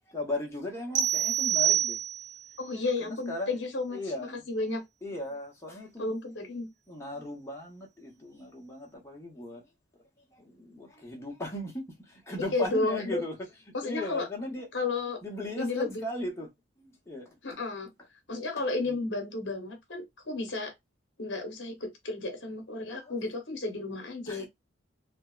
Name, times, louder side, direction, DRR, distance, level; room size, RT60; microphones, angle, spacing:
voice 1, 0.0-2.0 2.7-3.6 3.9-4.4 5.0-6.2 6.9-9.6 10.3-13.4 13.7-14.7 15.2-16.5 16.8-17.6 18.6-19.0 22.9-23.1 24.3-24.5, left 1 dB, 15° left, 0.7 m, -37 dB
sound 1, 1.0-2.5, right 10 dB, 70° right, 0.6 m, -26 dB
voice 2, 2.6-4.0 4.5-4.8 6.0-6.7 12.5-13.2 13.7-14.3 14.7-15.2 15.6-16.0 17.4-17.9 18.3-20.7 21.2-24.5, left 3 dB, 60° left, 0.9 m, -32 dB
3.2 x 2.0 x 2.3 m
head